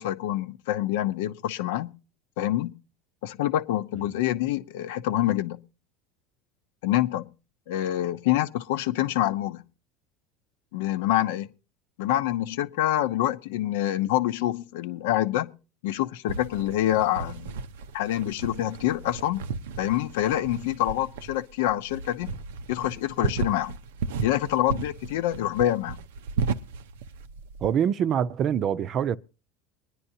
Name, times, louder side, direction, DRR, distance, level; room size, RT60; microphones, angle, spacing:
voice 1, 0.0-1.9 2.4-2.7 3.2-5.6 6.8-7.3 7.7-9.6 10.7-11.5 12.0-15.5 15.8-17.6 17.9-19.4 19.8-22.3 22.7-23.7 24.2-26.0, left 13 dB, 80° left, 0.7 m, -26 dB
sound 1, 16.3-27.7, right 5 dB, 90° right, 0.6 m, -34 dB
voice 2, 27.6-29.2, right 8 dB, 45° right, 0.6 m, -24 dB
23.5 x 10.0 x 2.7 m
supercardioid pair, 100°, 0 cm